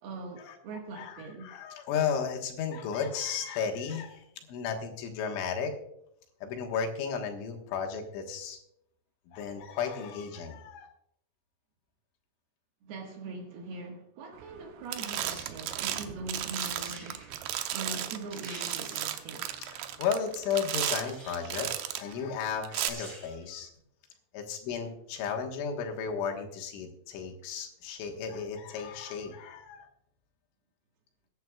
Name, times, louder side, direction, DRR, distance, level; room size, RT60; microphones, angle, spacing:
voice 1, 0.0-1.5 12.8-17.2 17.7-19.5 24.7-24.8, right 3 dB, 65° right, 3.1 m, -42 dB
voice 2, 1.0-5.7 6.4-8.6 9.3-10.9 19.5-23.7 24.3-29.9, left 6 dB, 80° left, 3.9 m, -34 dB
sound 1, 14.4-14.6 14.9-22.1 22.6-22.9, right 12 dB, 90° right, 2.2 m, -35 dB
sound 2, 15.0-15.5 16.2-16.3 16.5-17.3 17.9-18.0 18.3-19.3 20.6-21.6 22.4-22.5 22.7-23.4 23.8-23.9, right 1 dB, 20° right, 4.8 m, -46 dB
22.0 x 10.5 x 2.3 m
omnidirectional pair, 5.5 m